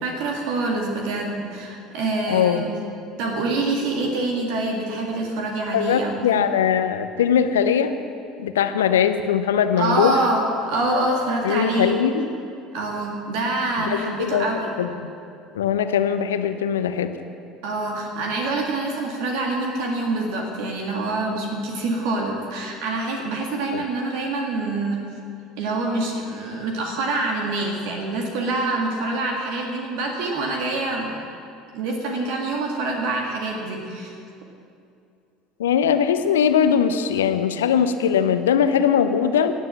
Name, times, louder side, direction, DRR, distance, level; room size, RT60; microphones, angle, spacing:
voice 1, 0.0-2.7 3.2-6.5 9.8-12.0 12.7-14.7 17.6-25.1 25.6-31.2 31.7-34.1, right 2 dB, 60° right, 1 dB, 1.9 m, -26 dB
voice 2, 2.3-2.6 5.7-8.0 8.4-10.1 11.4-12.3 13.8-14.5 14.8-14.9 15.5-17.1 23.7-23.8 35.6-39.5, left 8 dB, 70° left, 9 dB, 0.8 m, -20 dB
18.5 x 7.7 x 7.4 m, 2.5 s
figure-of-eight pair, 65°, 0 cm